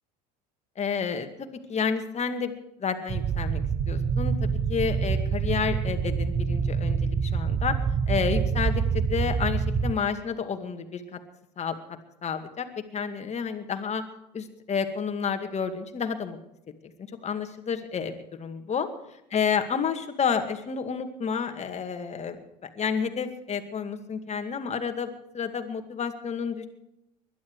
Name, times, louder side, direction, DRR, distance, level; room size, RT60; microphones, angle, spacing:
voice 1, 0.8-2.5 2.8-7.8 8.1-11.2 11.6-11.8 12.2-12.7 12.9-14.0 14.3-16.4 16.8-16.9 17.2-18.9 19.3-22.4 22.8-25.1 25.3-26.7, left 6 dB, 30° left, 7 dB, 2.3 m, -30 dB
sound 1, 3.1-9.9, right 6 dB, 30° right, 1.2 m, -26 dB
21.5 x 11.5 x 4.9 m, 0.84 s
hypercardioid pair, 75°, 21 cm